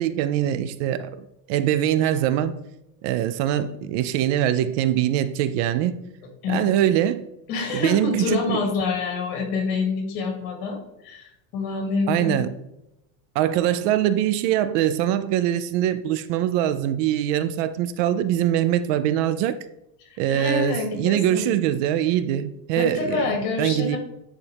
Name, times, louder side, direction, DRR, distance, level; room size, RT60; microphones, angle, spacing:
voice 1, 0.0-2.6 3.0-5.9 6.5-7.3 7.7-8.6 12.1-12.5 13.4-19.6 20.2-24.0, right 11 dB, 55° right, 13 dB, 0.5 m, -23 dB
voice 2, 6.4-6.8 7.5-10.8 11.0-12.4 20.1-21.4 22.7-24.0, left 4 dB, 50° left, 2 dB, 2.5 m, -27 dB
9.5 x 4.2 x 3.4 m, 0.86 s
supercardioid pair, 150°, 45 cm